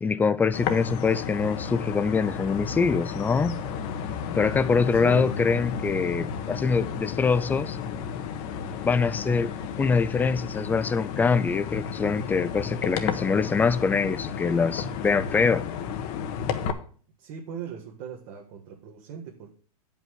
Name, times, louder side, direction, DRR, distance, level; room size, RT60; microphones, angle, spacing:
voice 1, 0.0-3.6 4.3-7.8 8.8-9.5 9.8-15.6, left 5 dB, 10° left, 0.4 m, -24 dB
sound 1, 0.5-16.7, left 7 dB, 45° left, 1.1 m, -32 dB
voice 2, 4.9-5.4 17.2-19.5, right 8 dB, 50° right, 1.5 m, -39 dB
9.0 x 5.5 x 6.3 m
hypercardioid pair, 125°, 19 cm